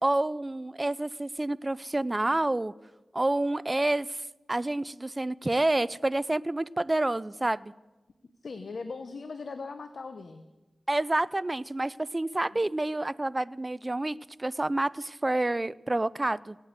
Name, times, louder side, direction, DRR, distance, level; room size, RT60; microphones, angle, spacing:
voice 1, 0.0-2.7 3.1-4.2 4.5-7.7 10.9-16.6, right 2 dB, 30° right, 20 dB, 0.5 m, -28 dB
voice 2, 8.4-10.4 12.5-12.6, left 4 dB, 75° left, 10 dB, 0.9 m, -39 dB
18.0 x 9.0 x 8.2 m, 1.1 s
cardioid pair, 50°, 0 cm